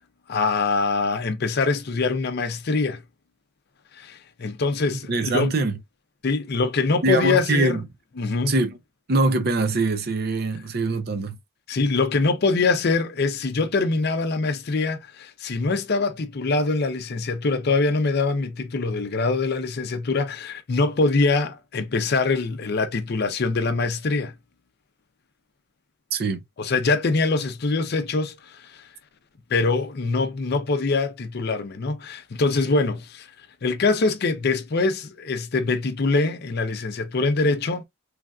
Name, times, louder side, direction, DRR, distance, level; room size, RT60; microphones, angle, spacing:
voice 1, 0.3-3.0 3.9-5.5 6.2-7.8 8.2-8.5 11.7-24.3 26.6-28.8 29.5-33.3 33.6-37.8, left 3 dB, 50° left, 0.5 m, -23 dB
voice 2, 5.1-5.8 7.0-7.8 8.5-8.8 9.1-11.4 26.1-26.4, right 2 dB, 50° right, 0.5 m, -23 dB
3.2 x 2.4 x 2.3 m
head